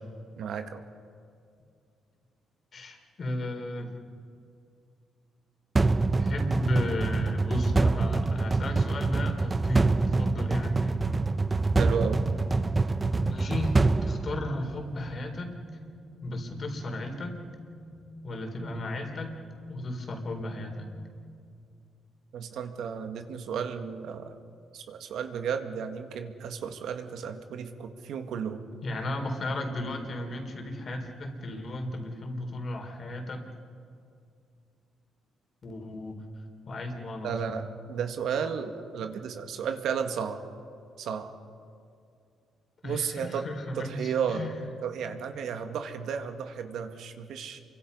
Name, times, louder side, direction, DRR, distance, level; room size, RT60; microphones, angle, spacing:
voice 1, 0.4-0.8 11.8-12.2 22.3-24.4 24.7-28.6 37.2-40.4 41.0-41.3 42.8-43.4 43.8-47.6, right 7 dB, 75° right, 6 dB, 2.0 m, -33 dB
voice 2, 2.7-4.1 6.2-11.0 13.2-15.5 16.2-17.3 18.2-19.3 19.7-20.9 28.8-33.4 35.6-36.2 36.6-37.4 42.8-44.6, left 1 dB, 45° left, 3 dB, 4.2 m, -34 dB
sound 1, 5.8-14.9, right 3 dB, 25° right, 0.8 m, -26 dB
sound 2, 14.6-21.4, equal, 30° left, 3.7 m, -48 dB
29.0 x 24.5 x 5.6 m, 2.4 s
cardioid pair, 90°, 0 cm